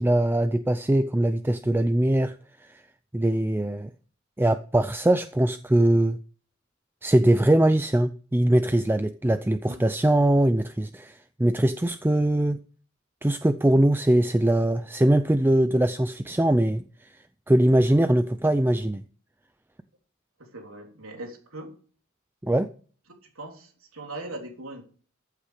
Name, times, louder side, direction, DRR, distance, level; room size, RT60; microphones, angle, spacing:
voice 1, 0.0-2.8 3.1-3.9 4.4-6.2 7.0-12.6 13.2-17.1 17.5-19.0 22.4-22.7, right 1 dB, 10° right, 0.4 m, -22 dB
voice 2, 20.4-21.7 23.2-24.8, right 2 dB, 85° right, 3.4 m, -40 dB
14.5 x 8.2 x 5.0 m
head